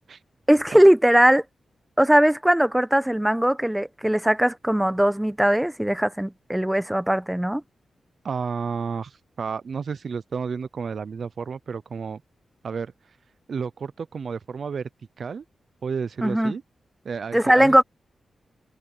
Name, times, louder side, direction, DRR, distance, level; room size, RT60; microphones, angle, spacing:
voice 1, 0.5-1.4 2.0-7.6 16.2-16.5 17.3-17.8, right 1 dB, 5° right, 1.2 m, -19 dB
voice 2, 8.2-12.2 12.6-12.9 13.5-14.9 15.2-15.4 15.8-16.6 17.0-17.8, right 5 dB, 65° right, 0.5 m, -31 dB
cardioid pair, 70°, 0 cm